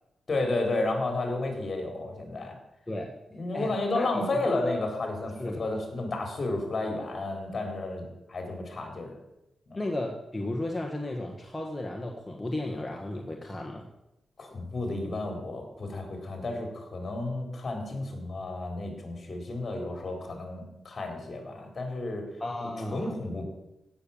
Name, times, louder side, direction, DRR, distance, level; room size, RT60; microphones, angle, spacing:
voice 1, 0.3-2.5 3.3-9.1 9.7-9.8 14.4-22.3 22.6-23.5, left 2 dB, 40° left, 3 dB, 4.1 m, -32 dB
voice 2, 3.5-4.8 5.4-5.7 9.7-13.9 22.4-23.1, left 1 dB, 10° left, 0 dB, 1.5 m, -34 dB
16.0 x 6.9 x 8.8 m, 0.91 s
wide cardioid pair, 130°, 0 cm